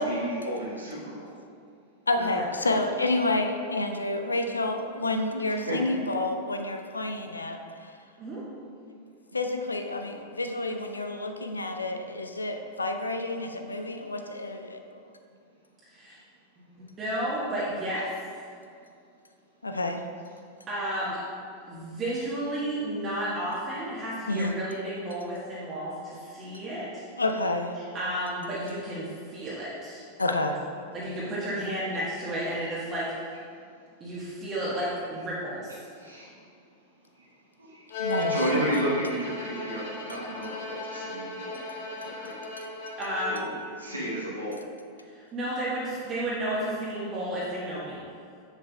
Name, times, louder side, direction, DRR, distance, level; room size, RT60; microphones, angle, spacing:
voice 1, 0.0-1.4 5.4-5.8 36.0-36.4 37.1-37.3 37.6-41.6 42.0-42.4 43.3-43.4 43.8-44.7, right 1 dB, 80° right, -6 dB, 1.0 m, -32 dB
voice 2, 2.1-7.6 9.0-9.1 9.3-15.1 19.6-20.0 24.3-24.5 26.4-26.5 27.2-27.7 30.2-30.6 38.0-38.6 42.6-42.7, left 2 dB, 80° left, 5 dB, 0.5 m, -29 dB
voice 3, 16.6-18.1 20.7-21.2 21.6-27.0 27.8-30.0 30.9-33.3 34.0-35.8 43.0-43.5 45.1-48.0, right 1 dB, 25° right, -8 dB, 1.2 m, -32 dB
Bowed string instrument, 37.9-43.6, left 2 dB, 55° left, 0.9 m, -35 dB
7.3 x 6.5 x 2.2 m, 2.3 s
figure-of-eight pair, 90°, 0 cm